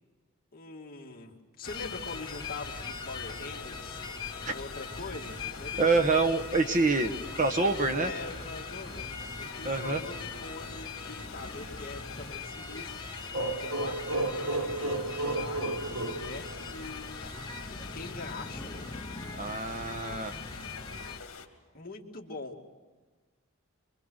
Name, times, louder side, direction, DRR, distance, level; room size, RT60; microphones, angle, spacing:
voice 1, 0.5-5.9 8.0-14.9 15.3-18.8 21.7-22.7, left 3 dB, 40° left, 0 dB, 2.4 m, -43 dB
sound 1, 1.6-21.5, left 5 dB, 65° left, 2.5 m, -46 dB
sound 2, 1.7-21.2, left 4 dB, 20° left, 1.0 m, -41 dB
voice 2, 5.8-8.1 9.6-10.0 19.4-20.4, right 3 dB, 35° right, 6 dB, 1.1 m, -26 dB
sound 3, 13.3-17.0, right 2 dB, 65° right, 1.3 m, -32 dB
25.0 x 25.0 x 6.5 m, 1.4 s
head